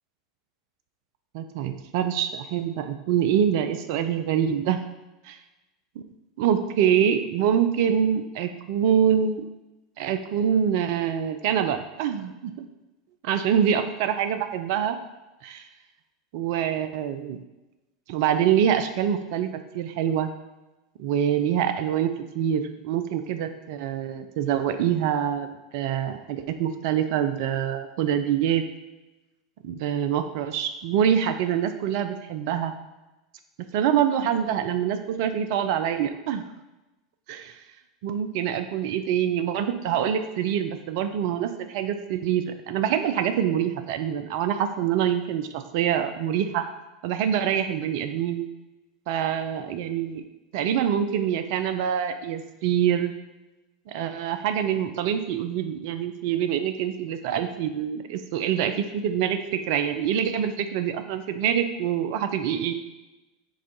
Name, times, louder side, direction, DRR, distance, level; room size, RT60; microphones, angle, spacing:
voice 1, 1.3-4.8 6.4-9.4 10.0-12.7 13.2-15.0 15.4-15.6 16.3-17.4 18.1-19.5 19.7-20.3 21.0-25.5 25.7-28.6 29.6-32.7 33.6-36.4 37.3-37.6 38.0-46.6 47.0-48.5 49.1-50.2 50.5-53.1 53.9-62.7, right 9 dB, 50° right, 9 dB, 0.4 m, -25 dB
4.8 x 2.4 x 3.9 m, 1.0 s
figure-of-eight pair, 85°, 2 cm